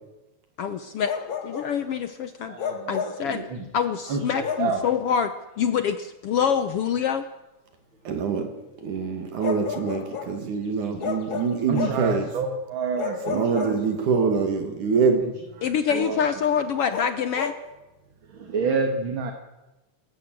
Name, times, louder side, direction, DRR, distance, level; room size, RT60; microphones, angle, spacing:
voice 1, 0.6-1.1 1.4-2.6 2.9-3.4 3.7-7.2 15.6-17.5, left 7 dB, 75° left, 10 dB, 1.3 m, -25 dB
Bark, 1.0-1.8 2.6-3.3 4.4-4.8 6.4-6.6 9.4-10.4 11.0-12.1 13.0-14.2 16.9-17.6, left 7 dB, 40° left, 2.4 m, -32 dB
voice 2, 2.4-3.7 4.1-4.8 11.7-13.8 14.2-14.4 15.6-16.4 18.3-19.3, right 4 dB, 45° right, 4 dB, 2.3 m, -29 dB
voice 3, 8.0-8.5 8.8-12.3 13.3-15.2, right 5 dB, 70° right, 5 dB, 3.5 m, -24 dB
28.5 x 14.0 x 7.8 m, 1.1 s
omnidirectional pair, 3.7 m